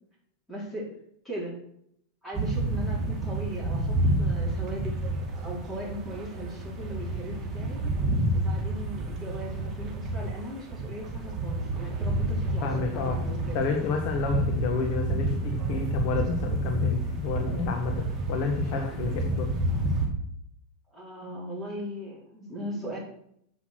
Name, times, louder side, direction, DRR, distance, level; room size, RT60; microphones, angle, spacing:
voice 1, 0.5-0.9 1.2-1.6 2.2-7.8 8.3-13.6 18.7-18.9 20.9-23.0, right 1 dB, 10° left, -5 dB, 4.4 m, -38 dB
sound 1, 2.3-20.1, right 1 dB, 25° right, 2.4 m, -29 dB
voice 2, 12.6-13.2 13.5-19.5, left 5 dB, 50° left, 3 dB, 1.4 m, -30 dB
8.2 x 6.1 x 6.3 m, 0.71 s
supercardioid pair, 145°, 0 cm